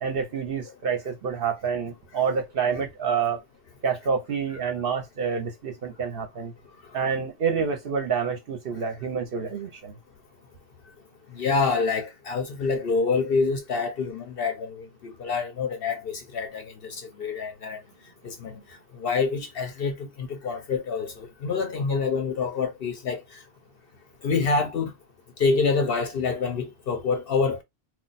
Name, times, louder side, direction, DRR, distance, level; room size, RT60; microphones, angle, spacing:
voice 1, 0.0-3.4 3.8-6.5 6.9-9.9, right 6 dB, 60° right, 0.7 m, -28 dB
voice 2, 11.3-17.8 18.2-18.6 19.0-23.2 24.2-24.9 25.4-27.6, left 4 dB, 60° left, 0.7 m, -26 dB
2.3 x 2.2 x 3.9 m
omnidirectional pair, 1.3 m